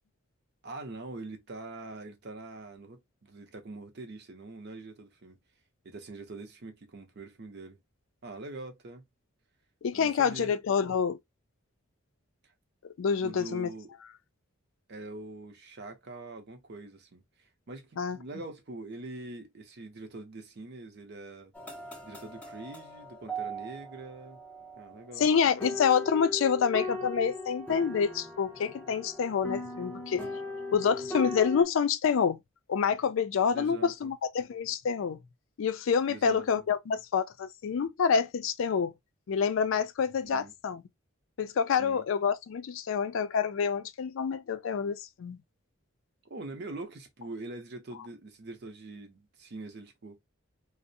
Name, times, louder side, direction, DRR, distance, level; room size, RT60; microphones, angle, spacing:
voice 1, 0.6-5.4 5.8-7.8 8.2-9.0 9.9-10.5 12.4-12.5 13.2-13.9 14.9-21.5 22.0-24.4 24.8-25.3 33.5-34.1 36.1-36.7 40.2-40.5 41.8-42.0 46.2-50.2, right 2 dB, 55° right, 0.6 m, -44 dB
voice 2, 9.8-11.2 12.8-13.7 18.0-18.2 25.2-30.3 30.7-32.4 32.7-35.2 35.6-38.9 39.3-40.8 41.4-45.4, left 6 dB, 70° left, 0.4 m, -27 dB
sound 1, 21.5-31.6, left 1 dB, 5° left, 0.5 m, -39 dB
2.5 x 2.0 x 2.6 m
head